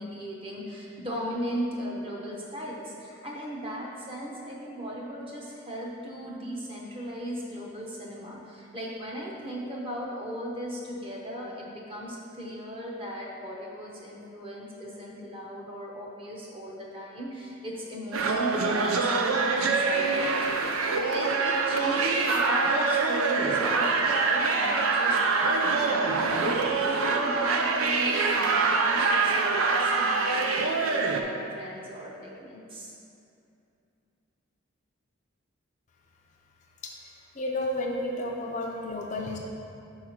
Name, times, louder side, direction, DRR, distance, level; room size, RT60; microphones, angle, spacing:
voice 1, 0.0-32.9, equal, 25° right, -3 dB, 0.9 m, -37 dB
sound 1, 18.1-31.2, right 4 dB, 90° right, 0.5 m, -25 dB
voice 2, 37.3-39.4, left 1 dB, 35° left, 0 dB, 0.5 m, -31 dB
4.8 x 4.8 x 5.8 m, 2.6 s
head